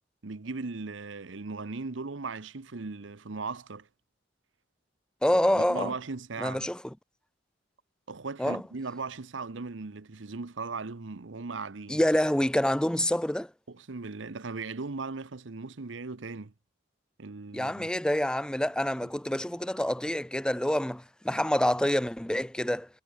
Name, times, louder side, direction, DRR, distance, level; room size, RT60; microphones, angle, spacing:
voice 1, 0.2-3.9 5.5-6.7 8.1-12.0 13.7-16.5 17.2-17.9, right 4 dB, 70° right, 0.9 m, -38 dB
voice 2, 5.2-5.9 6.4-6.8 8.4-8.6 11.9-13.5 17.5-22.9, left 1 dB, 5° left, 0.5 m, -27 dB
head